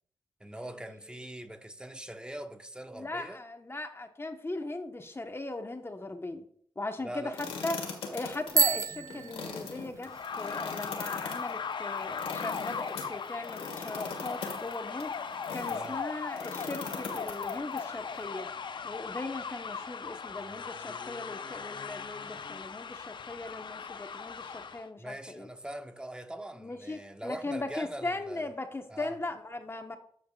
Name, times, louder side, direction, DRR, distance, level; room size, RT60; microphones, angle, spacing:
voice 1, 0.4-3.4 7.0-7.4 15.7-16.0 25.0-28.5 28.9-29.2, right 1 dB, 10° right, 1.1 m, -42 dB
voice 2, 2.9-6.4 6.7-10.1 10.4-15.1 15.5-18.5 18.8-25.5 26.5-30.0, left 2 dB, 25° left, 1.2 m, -38 dB
sound 1, 7.3-15.9 16.3-17.8, left 5 dB, 85° left, 1.7 m, -41 dB
Bicycle bell, 8.5-10.2, right 5 dB, 35° right, 0.7 m, -29 dB
sound 2, 10.0-24.8, left 6 dB, 55° left, 0.6 m, -38 dB
13.5 x 5.1 x 2.4 m
supercardioid pair, 45°, 10 cm